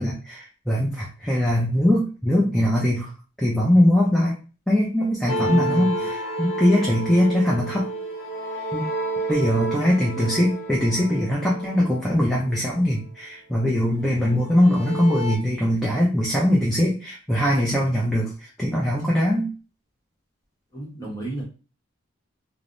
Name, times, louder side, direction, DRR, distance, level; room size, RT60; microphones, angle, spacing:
voice 1, 0.0-3.1 3.4-4.4 4.7-7.9 8.7-8.9 9.3-19.5, left 1 dB, ahead, -4 dB, 0.4 m, -21 dB
sound 1, 5.3-13.0 14.0-15.4, right 1 dB, 55° left, 0.5 m, -30 dB
voice 2, 5.5-6.1 10.1-10.3 20.7-21.4, right 2 dB, 15° left, -4 dB, 0.9 m, -32 dB
3.1 x 2.0 x 2.5 m, 0.35 s
head